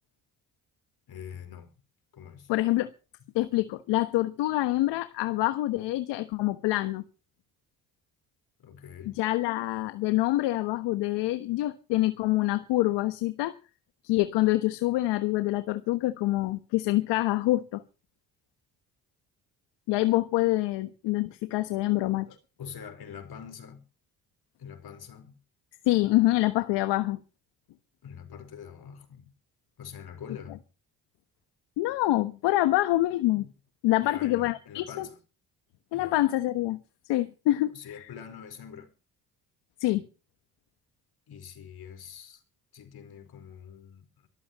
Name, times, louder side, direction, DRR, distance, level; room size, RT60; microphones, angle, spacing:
voice 1, 1.1-1.7 2.1-2.5 8.6-9.2 22.3-23.8 24.6-25.4 28.0-29.3 29.8-30.6 34.0-35.2 35.9-36.2 37.7-38.9 41.3-42.4 42.7-44.3, left 8 dB, 60° left, 5.1 m, -44 dB
voice 2, 2.5-2.9 3.3-7.0 9.0-13.6 14.0-17.8 19.9-22.3 25.9-27.2 31.8-33.5 33.8-35.0 35.9-36.8 37.1-38.1 39.8-40.0, left 17 dB, 80° left, 1.3 m, -26 dB
24.0 x 14.0 x 3.1 m
hypercardioid pair, 55°, 42 cm